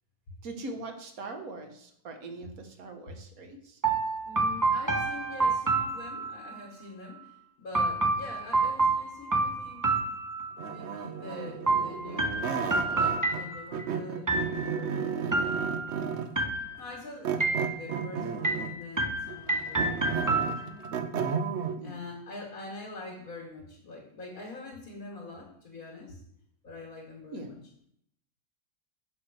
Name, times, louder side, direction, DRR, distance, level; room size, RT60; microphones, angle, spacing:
voice 1, 0.4-3.8 21.8-22.0 27.3-27.6, right 2 dB, 80° right, 5 dB, 1.6 m, -41 dB
sound 1, 3.8-6.6 7.7-10.8 11.7-13.9 14.3-14.9 15.3-16.0 16.4-17.0 17.4-18.1 18.4-20.9, right 3 dB, 20° right, 0.6 m, -29 dB
voice 2, 4.2-9.9 10.6-14.4 14.6-15.1 16.5-21.0 21.8-26.2 26.6-27.6, left 3 dB, 75° left, -3 dB, 2.2 m, -45 dB
sound 2, 10.6-13.5 13.7-16.4 17.2-18.8 19.3-21.8, right 6 dB, 60° right, 0.9 m, -33 dB
7.2 x 4.8 x 6.3 m, 0.70 s
omnidirectional pair, 1.5 m